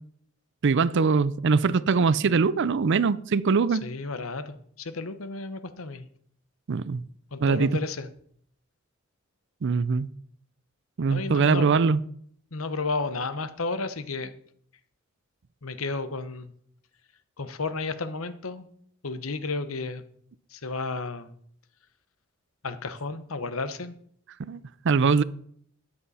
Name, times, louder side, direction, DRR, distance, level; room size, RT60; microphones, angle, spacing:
voice 1, 0.6-3.8 6.7-7.0 7.4-7.7 9.6-10.1 11.0-12.0 24.5-25.2, right 5 dB, 60° right, 0.5 m, -22 dB
voice 2, 3.7-6.1 7.3-8.1 11.1-11.7 12.5-14.3 15.6-16.5 17.4-18.7 19.0-20.0 20.5-21.3 22.6-24.0, left 3 dB, 90° left, 1.0 m, -32 dB
13.5 x 9.8 x 4.2 m
head